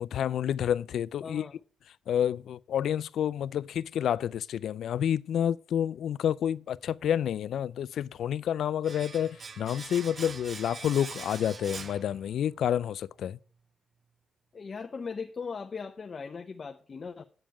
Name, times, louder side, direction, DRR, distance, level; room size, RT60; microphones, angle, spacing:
voice 1, 0.0-1.4 2.1-13.4, left 9 dB, 85° left, 0.3 m, -29 dB
voice 2, 1.2-1.6 14.5-17.2, left 5 dB, 40° left, 0.6 m, -39 dB
Domestic sounds home sounds, 8.8-12.7 12.9-13.1, right 5 dB, 40° right, 0.7 m, -43 dB
8.8 x 7.3 x 4.6 m
cardioid pair, 120°, 0 cm